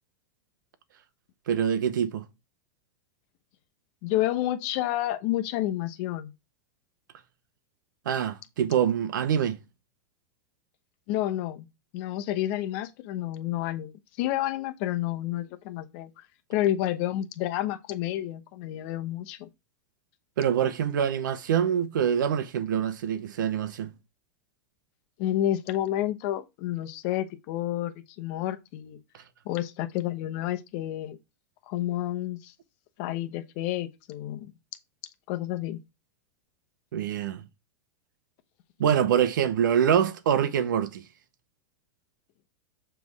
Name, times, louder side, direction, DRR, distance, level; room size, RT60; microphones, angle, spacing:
voice 1, 1.5-2.2 8.1-9.6 20.4-23.9 36.9-37.4 38.8-41.0, right 8 dB, 85° right, 0.9 m, -25 dB
voice 2, 4.0-6.3 11.1-11.7 11.9-16.1 16.5-19.5 25.2-29.0 29.4-31.2 31.7-32.5 33.0-34.5 35.3-35.8, left 13 dB, 45° left, 1.0 m, -30 dB
7.5 x 3.4 x 4.7 m
supercardioid pair, 155°, 10 cm